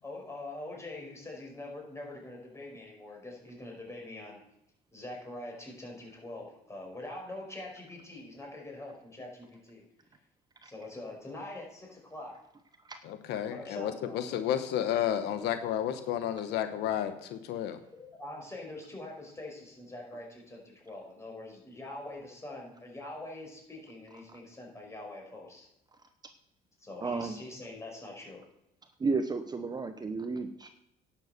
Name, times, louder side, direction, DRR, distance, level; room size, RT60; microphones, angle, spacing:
voice 1, 0.0-4.4 4.9-9.8 10.6-12.4 13.5-14.5 17.9-25.7 26.8-28.5, left 2 dB, 15° left, -1 dB, 5.2 m, -44 dB
voice 2, 13.0-17.8, left 10 dB, 85° left, 9 dB, 1.1 m, -32 dB
voice 3, 27.0-27.4 29.0-30.7, right 4 dB, 25° right, 8 dB, 0.9 m, -33 dB
11.0 x 7.3 x 6.7 m, 0.84 s
cardioid pair, 110°, 17 cm